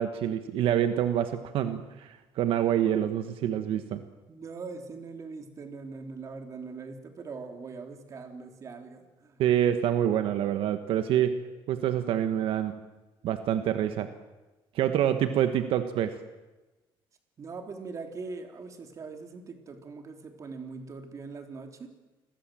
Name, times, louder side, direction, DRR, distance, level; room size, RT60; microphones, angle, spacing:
voice 1, 0.0-4.0 9.4-11.4 11.7-12.7 13.2-14.1 14.7-16.2, right 10 dB, 75° right, 9 dB, 1.5 m, -26 dB
voice 2, 4.3-9.4 17.4-21.9, right 4 dB, 35° right, 5 dB, 3.4 m, -41 dB
29.0 x 22.0 x 7.7 m, 1.1 s
cardioid pair, 155°, 9 cm